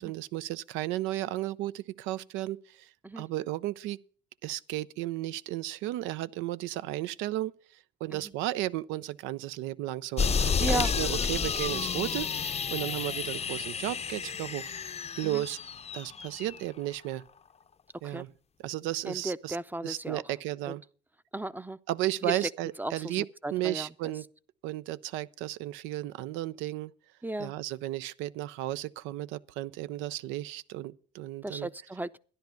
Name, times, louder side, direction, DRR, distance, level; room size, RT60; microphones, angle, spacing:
voice 1, 0.0-2.9 3.2-4.0 4.4-15.6 15.9-17.2 18.0-18.3 18.6-19.6 19.8-20.8 21.9-23.3 23.5-24.3 24.6-26.9 27.4-31.7, right 15 dB, 85° right, 0.5 m, -34 dB
sound 1, 10.2-16.6, left 6 dB, 35° left, 0.6 m, -31 dB
voice 2, 10.6-10.9 15.2-15.4 18.0-18.2 19.1-20.2 20.7-20.8 21.3-21.8 22.2-22.5 22.8-23.2 23.4-23.9 27.2-27.5 31.4-32.2, right 1 dB, 10° right, 0.6 m, -35 dB
13.0 x 10.5 x 5.7 m
supercardioid pair, 70°, 19 cm